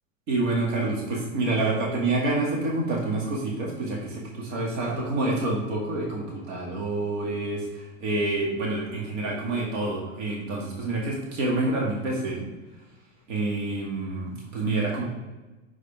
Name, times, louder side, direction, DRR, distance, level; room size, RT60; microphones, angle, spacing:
voice 1, 0.3-12.4 13.3-15.1, right 2 dB, 70° right, -2 dB, 2.2 m, -27 dB
6.3 x 5.0 x 3.5 m, 1.1 s
hypercardioid pair, 110°, 40 cm